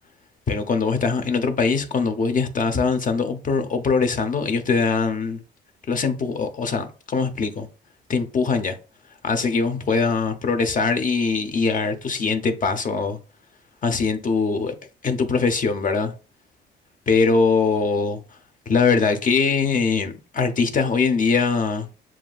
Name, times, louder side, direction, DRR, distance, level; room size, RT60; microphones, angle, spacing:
voice 1, 0.5-5.4 5.9-7.7 8.1-8.8 9.2-13.2 13.8-14.7 15.0-16.1 17.1-18.2 18.7-21.9, left 4 dB, 40° left, 0.8 m, -22 dB
7.2 x 2.5 x 2.4 m
cardioid pair, 90°, 20 cm